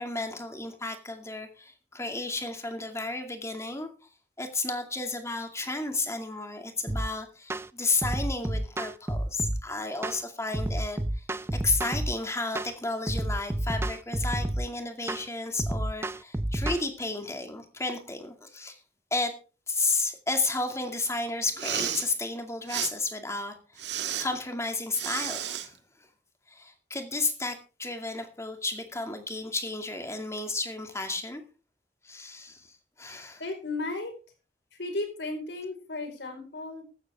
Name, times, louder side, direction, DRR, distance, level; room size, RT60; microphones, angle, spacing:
voice 1, 0.0-3.9 4.4-11.3 11.6-18.8 19.1-19.3 19.7-23.6 24.2-25.7 26.5-31.4 32.0-32.7 33.0-33.4, left 3 dB, 15° left, 5 dB, 2.4 m, -32 dB
sound 1, 6.9-7.1 7.5-7.7 8.0-9.6 10.0-10.2 10.5-12.1 12.6-12.7 13.1-14.7 15.1-15.3 15.6-16.8, right 1 dB, 15° right, 0.5 m, -30 dB
Respiratory sounds, 21.5-22.1 22.7-22.9 23.8-24.3 24.9-25.7, right 9 dB, 85° right, 1.7 m, -32 dB
voice 2, 33.4-34.1 34.8-36.8, left 2 dB, 85° left, 5 dB, 4.9 m, -34 dB
15.0 x 13.0 x 3.6 m, 0.36 s
head